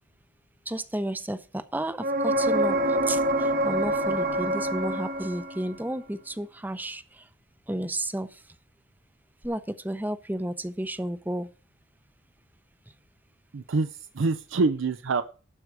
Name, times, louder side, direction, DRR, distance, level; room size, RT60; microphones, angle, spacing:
voice 1, 0.7-7.3 7.7-8.4 9.4-11.5, right 1 dB, 10° right, 13 dB, 0.6 m, -32 dB
sound 1, 2.0-5.8 9.4-9.5, right 1 dB, 45° right, 0.9 m, -26 dB
voice 2, 13.5-15.2, right 3 dB, 85° right, 10 dB, 0.5 m, -26 dB
12.0 x 4.8 x 7.9 m, 0.37 s
head